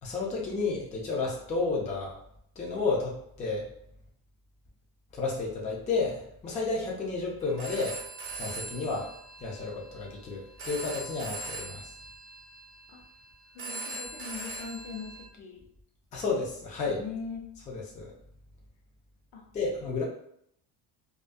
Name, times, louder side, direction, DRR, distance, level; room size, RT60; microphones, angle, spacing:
voice 1, 0.0-2.2 2.6-3.7 5.1-8.0 8.3-9.1 9.4-11.8 16.1-17.0 17.7-18.1 19.5-20.0, left 3 dB, 20° left, -3 dB, 0.4 m, -31 dB
Telephone, 7.4-15.2, right 2 dB, 35° right, 0.7 m, -41 dB
voice 2, 13.5-15.7 16.9-17.5 19.3-19.5, left 5 dB, 70° left, 2 dB, 0.7 m, -41 dB
2.3 x 2.1 x 2.5 m, 0.70 s
cardioid pair, 135°, 38 cm